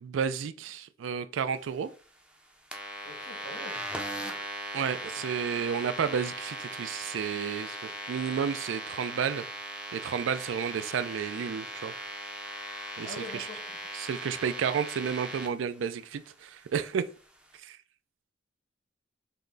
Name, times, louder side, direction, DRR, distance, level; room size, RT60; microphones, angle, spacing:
voice 1, 0.0-1.9 4.7-9.4 9.9-11.9 13.0-13.5 13.9-17.0 17.6-17.8, right 7 dB, 75° right, 0.3 m, -31 dB
sound 1, 2.7-15.5, right 1 dB, 5° right, 0.4 m, -39 dB
voice 2, 3.0-3.9 4.1-4.4 5.1-5.2 13.0-13.8, equal, 90° left, 1.8 m, -44 dB
5.6 x 2.0 x 3.8 m
head